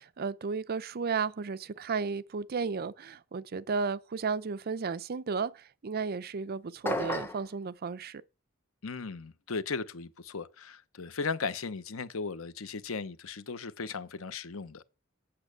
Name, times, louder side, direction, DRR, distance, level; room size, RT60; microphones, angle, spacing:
voice 1, 0.0-8.2, right 5 dB, 50° right, 0.5 m, -34 dB
sound 1, 6.9-7.5, left 1 dB, 10° left, 0.8 m, -32 dB
voice 2, 8.8-14.8, left 4 dB, 80° left, 0.8 m, -37 dB
8.6 x 7.2 x 6.5 m
head